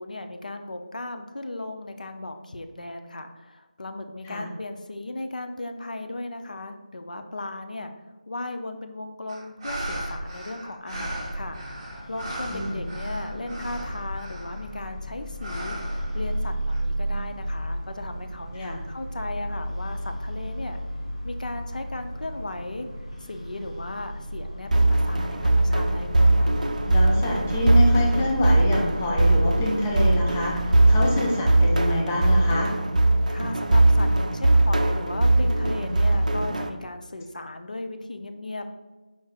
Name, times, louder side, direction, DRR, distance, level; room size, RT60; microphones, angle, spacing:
voice 1, 0.0-7.9 8.3-20.8 21.2-22.9 23.2-26.6 33.3-38.7, left 2 dB, 75° left, 6 dB, 0.5 m, -36 dB
sound 1, 9.3-14.8 15.4-16.8, right 1 dB, 30° right, 0.9 m, -36 dB
sound 2, 11.4-31.0, equal, 45° left, 1.0 m, -35 dB
voice 2, 12.5-12.8 18.6-18.8 26.9-32.7, left 1 dB, 15° left, -2 dB, 0.4 m, -27 dB
sound 3, 24.7-36.7, right 2 dB, 65° right, 0.4 m, -20 dB
4.6 x 2.3 x 4.3 m, 1.3 s
figure-of-eight pair, 165°, 4 cm